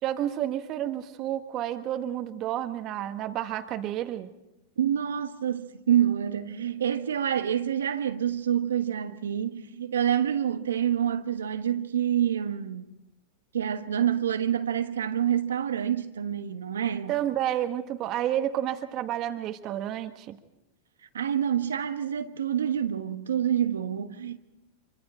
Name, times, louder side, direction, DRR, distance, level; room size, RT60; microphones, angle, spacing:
voice 1, 0.0-4.3 17.1-20.4, right 11 dB, 45° right, 1.6 m, -30 dB
voice 2, 4.8-13.0 13.5-17.1 21.1-24.4, right 9 dB, 90° right, 1.3 m, -27 dB
26.0 x 24.5 x 4.4 m
hypercardioid pair, 110°, 0 cm